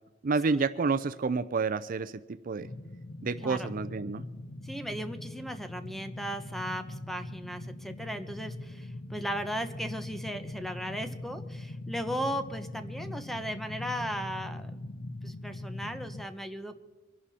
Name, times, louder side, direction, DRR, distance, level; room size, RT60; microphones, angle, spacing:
voice 1, 0.2-2.7 3.2-4.2, right 4 dB, 50° right, 12 dB, 0.5 m, -29 dB
sound 1, 2.6-16.2, left 1 dB, 55° left, 0.9 m, -41 dB
voice 2, 4.6-14.7 15.2-16.8, equal, ahead, 8 dB, 1.0 m, -36 dB
25.0 x 11.0 x 4.3 m, 1.2 s
head